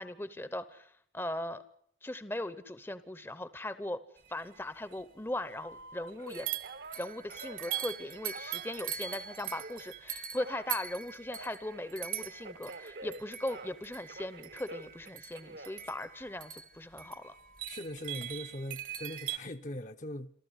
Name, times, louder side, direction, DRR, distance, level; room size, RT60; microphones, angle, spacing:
voice 1, 0.0-1.6 2.0-4.0 4.3-6.5 7.0-17.4, left 1 dB, 10° left, 0.8 m, -39 dB
sound 1, 4.6-4.7 4.9-5.0 6.3-19.4, right 11 dB, 50° right, 1.1 m, -41 dB
Telephone, 5.6-9.9 10.4-13.8 14.1-16.6 17.1-17.6, right 2 dB, 65° right, 1.2 m, -49 dB
voice 2, 17.7-20.3, left 1 dB, 40° left, 0.8 m, -40 dB
27.0 x 14.0 x 8.0 m
head